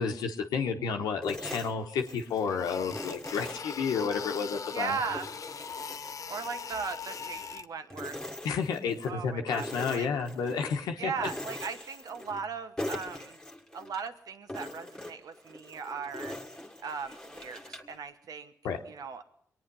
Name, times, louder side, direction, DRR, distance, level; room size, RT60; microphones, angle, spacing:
voice 1, 0.0-5.0 8.4-11.3 18.6-18.8, left 6 dB, 85° left, 4 dB, 1.1 m, -31 dB
sound 1, 1.2-2.5 2.9-4.5 4.9-7.6 7.9-9.1 9.5-10.7 11.2-12.5 12.8-14.1 14.5-18.0, left 1 dB, 10° left, 1.7 m, -42 dB
sound 2, 1.8-1.9 2.3-7.7, left 6 dB, 55° left, 0.7 m, -40 dB
voice 2, 4.7-5.3 6.3-8.2 9.1-9.7 9.9-10.1 11.0-13.4 13.7-16.4 16.8-18.5 18.9-19.2, right 6 dB, 70° right, 9 dB, 1.1 m, -37 dB
22.5 x 9.4 x 5.4 m, 0.69 s
supercardioid pair, 50°, 6 cm